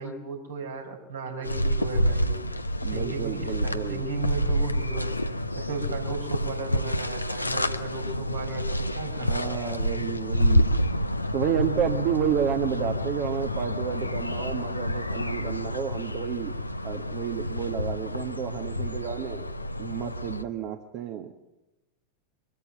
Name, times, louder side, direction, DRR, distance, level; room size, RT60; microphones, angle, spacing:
voice 1, 0.0-2.4 2.8-5.2 5.5-10.0, right 4 dB, 70° right, 1 dB, 4.5 m, -36 dB
sound 1, 1.4-20.4, equal, 85° left, 0.9 m, -28 dB
voice 2, 2.8-4.0 9.2-10.6 11.3-16.6 16.8-19.5 19.8-21.3, right 9 dB, 40° right, 6 dB, 1.4 m, -30 dB
24.0 x 13.0 x 9.2 m, 1.0 s
figure-of-eight pair, 90°, 0 cm